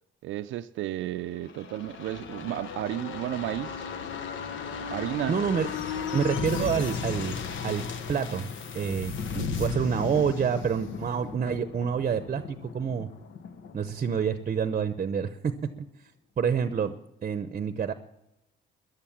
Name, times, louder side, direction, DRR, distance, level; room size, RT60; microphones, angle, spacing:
voice 1, 0.2-3.9 4.9-5.4 6.5-6.9, right 14 dB, 80° right, 0.4 m, -33 dB
sound 1, 1.4-14.9 15.2-15.3, left 6 dB, 75° left, 1.1 m, -36 dB
voice 2, 5.3-5.7 6.1-7.8 8.1-8.5 8.7-13.1 13.7-15.5 16.0-16.1 16.4-16.9 17.2-17.9, right 7 dB, 40° right, 0.7 m, -28 dB
14.5 x 11.0 x 7.2 m
cardioid pair, 90°, 20 cm